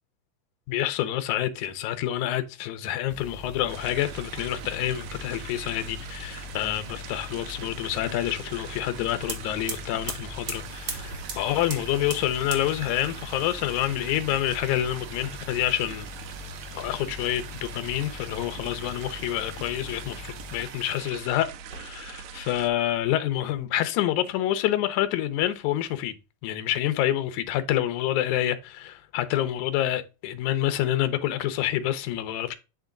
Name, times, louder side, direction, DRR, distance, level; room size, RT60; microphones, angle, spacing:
voice 1, 0.7-16.1 16.7-26.2 26.4-32.5, left 12 dB, 75° left, 2.0 m, -27 dB
sound 1, 3.1-20.7, left 4 dB, 45° left, 1.3 m, -43 dB
sound 2, 3.7-22.7, right 7 dB, 80° right, 1.7 m, -42 dB
sound 3, 9.2-21.1 21.6-22.4 22.6-23.6, right 4 dB, 60° right, 1.1 m, -43 dB
9.0 x 3.5 x 3.8 m
omnidirectional pair, 3.9 m